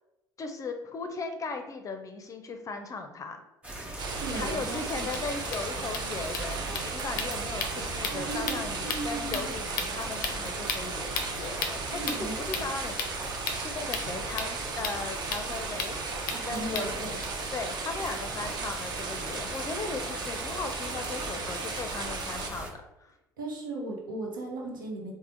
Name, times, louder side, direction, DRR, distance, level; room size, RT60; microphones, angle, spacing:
voice 1, 0.4-3.4 4.1-11.1 11.4-13.2 13.5-16.0 16.2-17.2 17.5-23.1, left 4 dB, 30° left, 6 dB, 0.5 m, -37 dB
sound 1, 3.6-22.7, right 1 dB, 10° right, 1.1 m, -40 dB
sound 2, 4.0-4.1 4.4-4.5 4.7-4.8 5.0-17.3, left 5 dB, 85° left, 0.4 m, -37 dB
sound 3, 4.0-22.5, right 4 dB, 45° right, 0.6 m, -36 dB
voice 2, 4.2-5.2 8.1-8.6 8.8-9.5 11.9-12.7 16.3-17.2 23.4-25.1, right 2 dB, 90° right, -1 dB, 0.9 m, -37 dB
3.4 x 2.1 x 3.7 m, 0.94 s
hypercardioid pair, 70°, 11 cm